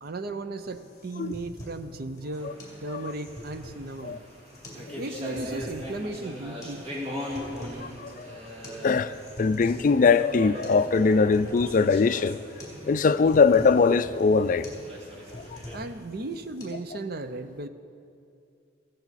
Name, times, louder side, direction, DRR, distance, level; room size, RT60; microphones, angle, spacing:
voice 1, 0.0-4.2 4.9-6.8 15.7-17.7, right 2 dB, 50° right, 0.6 m, -36 dB
sound 1, 0.6-16.6, left 1 dB, 20° left, 3.1 m, -45 dB
sound 2, 2.4-15.8, equal, 30° right, 2.1 m, -41 dB
voice 2, 7.6-8.4 8.8-12.4 12.8-14.8 15.3-15.6, left 4 dB, 45° left, 0.4 m, -22 dB
15.5 x 14.0 x 4.1 m
head